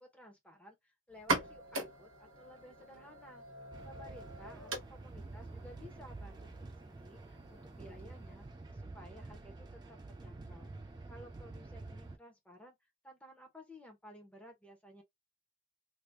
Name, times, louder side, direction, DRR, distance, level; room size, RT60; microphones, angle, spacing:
voice 1, 0.0-3.4 3.8-8.5 8.7-10.7 11.1-12.8 13.0-15.0, equal, 5° left, 0.9 m, -55 dB
sound 1, 1.1-8.6, right 3 dB, 80° right, 0.9 m, -42 dB
sound 2, 3.7-12.2, right 2 dB, 20° right, 0.3 m, -49 dB
2.8 x 2.4 x 3.3 m
head